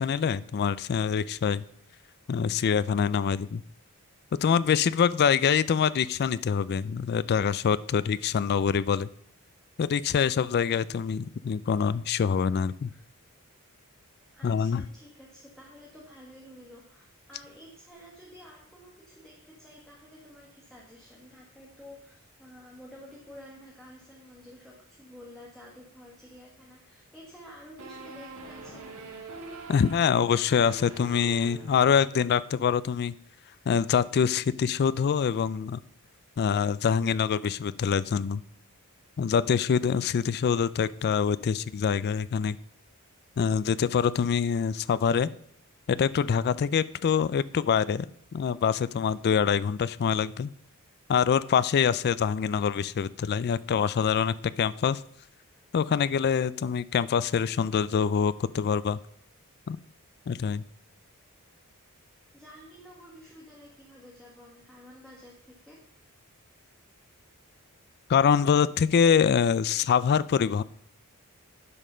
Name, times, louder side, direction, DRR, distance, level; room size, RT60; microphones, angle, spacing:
voice 1, 0.0-1.6 2.3-3.6 4.4-9.1 9.8-12.9 14.4-14.8 29.7-33.1 33.7-35.8 36.4-38.4 39.2-42.6 43.4-45.3 45.9-48.1 48.3-50.5 51.1-55.0 55.7-59.0 59.7-59.8 60.3-60.6 68.1-70.6, left 7 dB, 45° left, 17 dB, 0.3 m, -25 dB
voice 2, 14.3-28.8 62.3-65.8, equal, ahead, -4 dB, 1.5 m, -50 dB
sound 1, 27.8-32.4, right 3 dB, 75° right, 2.2 m, -44 dB
11.0 x 5.2 x 5.6 m, 0.66 s
head